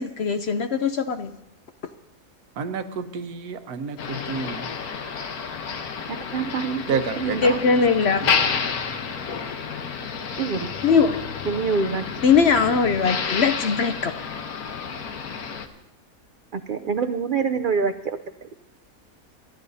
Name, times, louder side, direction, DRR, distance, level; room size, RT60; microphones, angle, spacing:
voice 1, 0.0-1.3 7.4-8.3 10.8-11.2 12.2-14.1, left 5 dB, 60° left, 8 dB, 0.8 m, -20 dB
voice 2, 2.6-4.7 6.9-7.4, right 6 dB, 85° right, 7 dB, 1.5 m, -29 dB
Motor vehicle (road), 4.0-15.7, left 6 dB, 90° left, 1.5 m, -30 dB
voice 3, 6.1-7.6 10.4-10.7 11.5-12.1 16.5-18.5, right 5 dB, 65° right, 7 dB, 0.5 m, -26 dB
28.5 x 13.0 x 2.7 m, 0.86 s
omnidirectional pair, 1.5 m